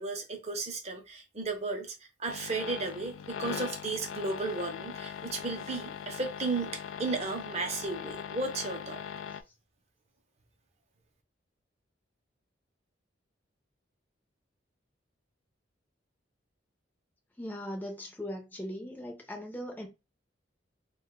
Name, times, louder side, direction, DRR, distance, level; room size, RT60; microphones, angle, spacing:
voice 1, 0.0-1.9 2.2-9.0, right 3 dB, 35° right, 0.6 m, -34 dB
sound 1, 2.3-9.4, left 7 dB, 90° left, 0.3 m, -40 dB
voice 2, 17.4-19.9, equal, 10° left, 0.6 m, -39 dB
2.4 x 2.2 x 3.6 m
head